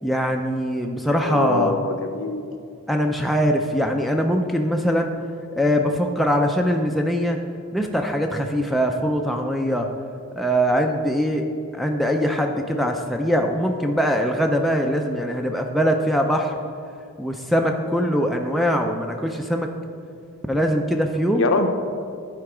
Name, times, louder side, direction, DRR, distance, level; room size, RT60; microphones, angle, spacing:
voice 1, 0.0-1.8 2.9-5.1 5.6-7.4 7.7-9.9 10.4-11.5 11.7-16.6 17.2-19.7 20.5-21.5, equal, ahead, 2 dB, 0.3 m, -22 dB
voice 2, 1.2-2.5 21.3-21.7, left 3 dB, 60° left, 7 dB, 0.6 m, -23 dB
10.5 x 4.5 x 4.9 m, 2.4 s
head